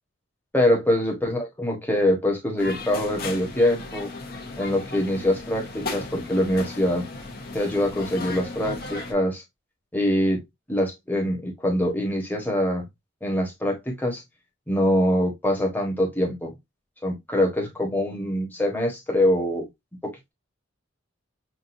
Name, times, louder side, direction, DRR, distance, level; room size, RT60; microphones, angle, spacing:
voice 1, 0.5-4.1 4.6-7.0 7.5-9.4 9.9-10.4 10.7-12.9 13.2-14.2 14.7-16.5 17.0-19.7 20.0-20.3, left 1 dB, 10° left, 1.2 m, -24 dB
sound 1, 2.6-9.1, left 2 dB, 45° left, 1.0 m, -36 dB
6.0 x 2.6 x 2.6 m
head